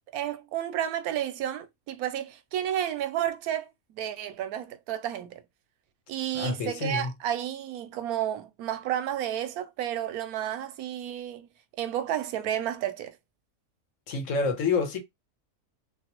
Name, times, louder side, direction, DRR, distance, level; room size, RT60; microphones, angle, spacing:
voice 1, 0.1-5.4 6.1-11.5 11.8-13.2, right 11 dB, 90° right, 1.1 m, -31 dB
voice 2, 6.3-7.1 14.1-15.0, left 4 dB, 65° left, 1.1 m, -28 dB
3.4 x 2.6 x 2.9 m
omnidirectional pair, 1.5 m